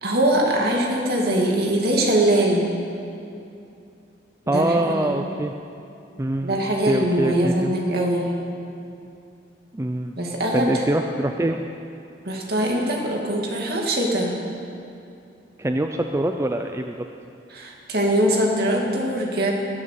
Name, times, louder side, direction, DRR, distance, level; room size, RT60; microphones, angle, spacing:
voice 1, 0.0-2.7 4.5-5.2 6.4-8.3 10.2-10.8 12.2-14.3 17.5-19.5, right 1 dB, 60° right, -1 dB, 2.5 m, -22 dB
voice 2, 4.5-5.6 6.2-6.6 6.9-7.7 9.7-10.2 10.5-11.6 15.6-17.1, right 1 dB, 15° right, 4 dB, 0.4 m, -24 dB
20.5 x 7.2 x 6.8 m, 2.6 s
head